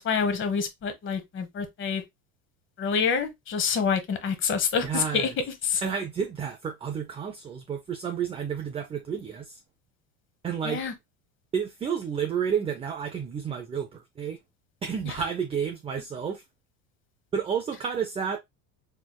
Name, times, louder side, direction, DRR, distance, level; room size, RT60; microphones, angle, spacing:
voice 1, 0.0-2.0 2.8-5.3 5.6-5.8 10.6-10.9 15.0-15.1, left 6 dB, 30° left, 1.0 m, -27 dB
voice 2, 4.8-5.3 5.8-9.6 10.4-10.8 11.5-14.4 14.8-16.4 17.3-18.4, right 7 dB, 15° right, 0.4 m, -31 dB
4.3 x 3.3 x 2.2 m
supercardioid pair, 120°, 37 cm